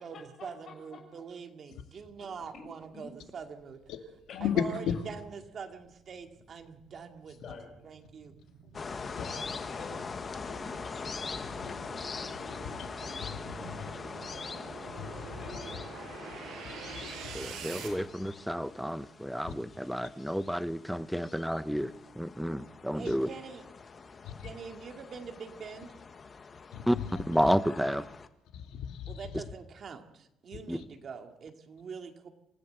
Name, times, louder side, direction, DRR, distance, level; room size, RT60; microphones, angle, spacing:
voice 1, 0.0-3.8 4.4-7.4 7.8-8.3 22.9-23.6 24.4-26.1 29.1-32.3, right 6 dB, 35° right, 5 dB, 2.3 m, -44 dB
sound 1, 3.2-3.3 3.8-17.9, right 6 dB, 65° right, 6.5 m, -48 dB
voice 2, 4.3-4.9 9.1-9.2 11.4-12.1 12.6-12.9 13.2-13.9 14.9-15.8 16.3-18.0 19.4-19.5 23.1-23.2 24.2-24.5 26.7-27.5 28.5-29.4 30.5-30.8, left 9 dB, 75° left, 6 dB, 2.3 m, -38 dB
sound 2, 8.7-28.3, left 5 dB, 25° left, 1.2 m, -43 dB
voice 3, 9.0-10.6 15.4-15.7, left 4 dB, 40° left, 1 dB, 6.9 m, -47 dB
voice 4, 17.3-23.3 26.9-27.0 27.3-28.1 29.3-29.4 30.7-30.8, equal, ahead, 13 dB, 0.7 m, -31 dB
27.0 x 15.0 x 8.0 m, 0.84 s
cardioid pair, 175°, 0 cm